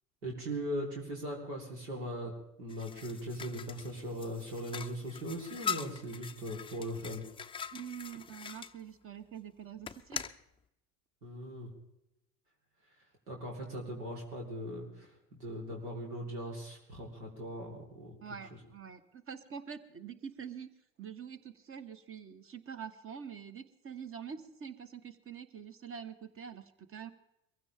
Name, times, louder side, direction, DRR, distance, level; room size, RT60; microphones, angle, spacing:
voice 1, 0.2-2.3 2.6-7.2 11.2-11.7 13.3-18.2, equal, 75° right, 0 dB, 4.4 m, -39 dB
sound 1, 2.7-8.7 9.8-10.4, left 7 dB, 10° left, 0.5 m, -42 dB
voice 2, 7.7-10.3 18.2-20.7 21.0-27.1, right 7 dB, 25° right, 13 dB, 1.4 m, -45 dB
23.0 x 15.5 x 3.6 m, 0.86 s
hypercardioid pair, 80°, 47 cm